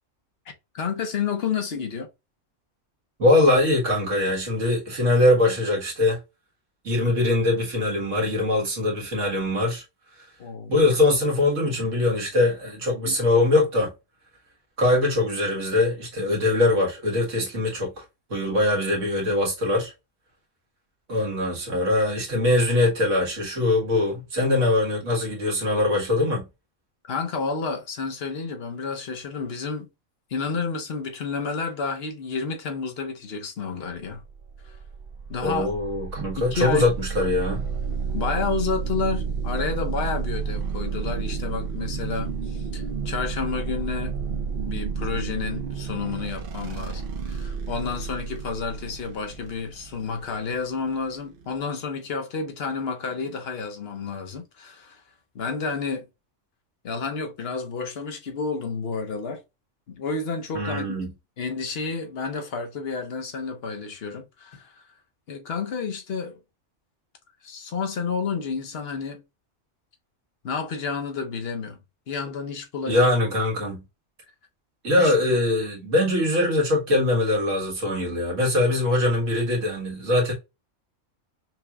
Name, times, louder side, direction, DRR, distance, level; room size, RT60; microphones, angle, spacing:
voice 1, 0.7-2.1 7.0-7.1 10.4-10.7 13.0-13.2 27.0-29.9 30.3-34.2 34.6-34.8 35.3-35.7 36.4-36.9 38.1-44.1 44.7-55.0 55.3-56.1 56.8-59.4 59.9-60.9 61.4-64.8 65.3-66.4 67.4-69.2 70.4-71.8 72.1-73.1 74.9-75.1, left 5 dB, 55° left, 1.1 m, -30 dB
voice 2, 3.2-6.2 6.8-9.8 10.7-13.9 14.8-18.0 18.3-19.9 21.1-26.5 35.4-37.7 60.5-61.1 72.9-73.8 74.8-80.3, left 2 dB, 80° right, 1.9 m, -22 dB
sound 1, 34.2-51.6, right 5 dB, 55° right, 0.8 m, -31 dB
5.9 x 2.9 x 2.3 m
omnidirectional pair, 1.3 m